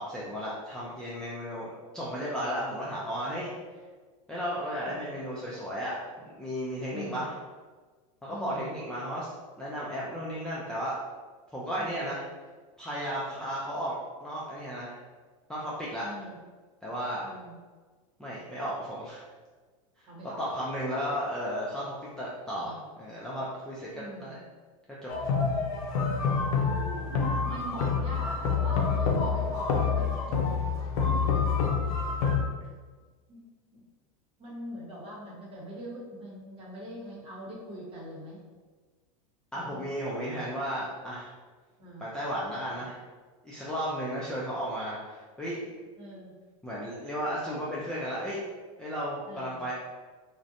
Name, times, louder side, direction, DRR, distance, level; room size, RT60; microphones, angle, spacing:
voice 1, 0.0-3.5 4.3-5.9 6.3-7.3 8.2-9.3 9.6-11.0 11.5-12.2 12.8-14.0 14.2-15.0 15.5-16.1 16.8-17.3 18.2-19.2 20.0-20.1 20.4-24.4 25.0-25.1 39.5-41.3 42.0-43.0 43.4-45.8 46.6-48.4 48.8-49.7, equal, 5° left, -8 dB, 0.3 m, -34 dB
voice 2, 6.9-7.3 8.3-8.7 11.7-12.1 13.4-13.5 16.0-16.4 17.2-17.5 20.1-20.5 22.5-22.8 23.9-24.4 26.7-30.2 30.9-31.3 33.3-33.4 33.7-33.8 34.4-38.4 39.5-39.9 41.8-42.1 46.0-46.3 49.3-49.6, right 1 dB, 30° right, -5 dB, 1.0 m, -42 dB
sound 1, 25.1-32.4, left 5 dB, 75° left, 0.5 m, -27 dB
2.5 x 2.1 x 2.5 m, 1.4 s
supercardioid pair, 120°, 18 cm